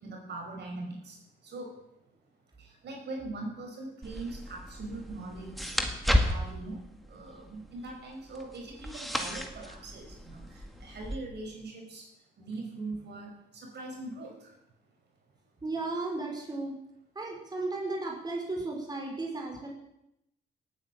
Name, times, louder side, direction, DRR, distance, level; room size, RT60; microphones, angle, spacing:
voice 1, 0.0-1.2 1.4-1.7 2.6-5.9 6.3-6.8 7.1-12.1 12.4-14.5, right 2 dB, 60° right, 1 dB, 5.5 m, -41 dB
sound 1, 4.0-11.2, equal, ahead, 2.1 m, -33 dB
voice 2, 15.6-16.7 17.1-19.7, right 2 dB, 20° right, -1 dB, 4.9 m, -34 dB
18.0 x 9.4 x 7.6 m, 0.83 s
cardioid pair, 90°, 20 cm